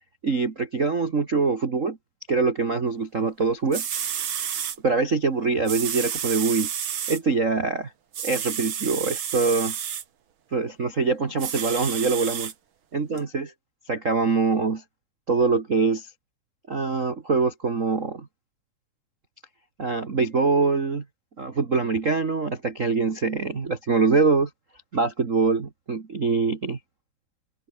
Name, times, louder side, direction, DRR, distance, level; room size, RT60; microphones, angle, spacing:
voice 1, 0.2-2.0 2.3-3.9 4.8-6.7 7.1-7.9 8.2-9.7 10.5-12.5 12.9-13.5 13.9-14.8 15.3-16.1 16.7-18.3 19.8-21.0 21.4-24.5 24.9-26.8, right 4 dB, 85° right, 0.7 m, -24 dB
sound 1, 3.4-3.5 3.7-4.8 5.7-7.2 8.1-10.0 11.4-12.5 13.2-13.3, right 9 dB, 50° right, 1.5 m, -30 dB
omnidirectional pair, 4.3 m